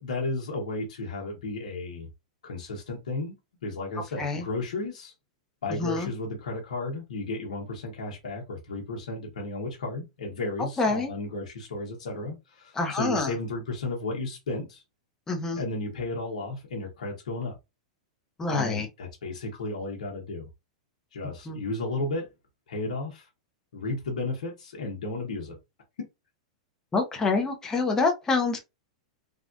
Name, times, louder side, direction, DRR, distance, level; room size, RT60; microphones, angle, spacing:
voice 1, 0.0-2.1 2.4-3.3 3.6-5.1 5.6-14.8 15.6-17.6 18.5-20.5 21.1-22.3 22.7-23.3 23.7-25.6, left 2 dB, 85° left, 1.0 m, -33 dB
voice 2, 10.8-11.1 12.8-13.3 15.3-15.6 18.4-18.9 21.5-21.6 26.9-28.6, left 3 dB, 15° left, 0.7 m, -26 dB
3.5 x 2.3 x 2.5 m
hypercardioid pair, 120°, 4 cm